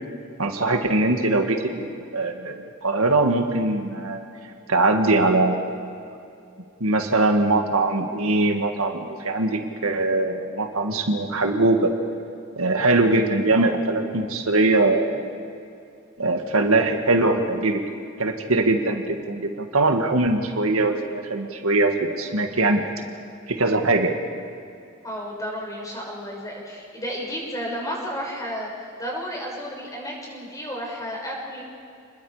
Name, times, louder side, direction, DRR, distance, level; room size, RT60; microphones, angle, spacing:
voice 1, 0.4-1.9 2.1-4.2 4.7-5.6 6.8-11.9 12.6-15.1 16.2-17.8 18.2-22.8 23.5-24.1, right 2 dB, 80° right, 4 dB, 1.9 m, -21 dB
voice 2, 25.0-31.6, equal, 15° left, -2 dB, 6.1 m, -32 dB
29.5 x 21.0 x 5.0 m, 2.5 s
head